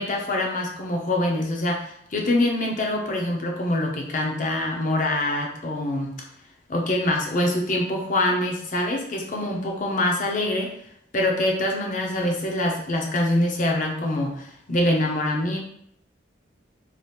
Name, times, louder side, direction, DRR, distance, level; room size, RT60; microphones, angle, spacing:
voice 1, 0.0-6.3 6.7-10.7 11.1-15.6, left 1 dB, 45° left, 1 dB, 0.6 m, -24 dB
2.8 x 2.3 x 3.3 m, 0.68 s
head